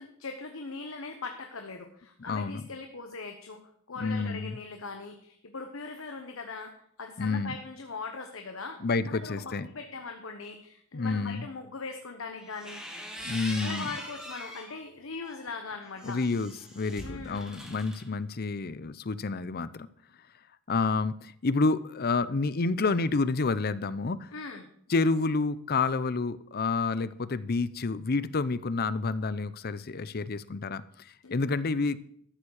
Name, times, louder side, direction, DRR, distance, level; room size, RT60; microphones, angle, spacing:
voice 1, 0.0-3.6 3.9-6.7 7.0-8.8 9.1-12.8 13.6-16.2 17.0-17.5 24.3-24.6 31.2-31.3, left 4 dB, 80° left, 5 dB, 1.1 m, -40 dB
voice 2, 2.3-2.7 4.0-4.6 7.2-7.5 8.8-9.7 10.9-11.5 13.2-13.9 16.0-19.9 20.7-24.3 24.9-32.0, left 3 dB, 50° left, 15 dB, 0.6 m, -29 dB
sound 1, 12.4-14.7 15.2-18.0, equal, 5° right, 2.0 m, -42 dB
13.0 x 7.3 x 6.5 m, 0.66 s
head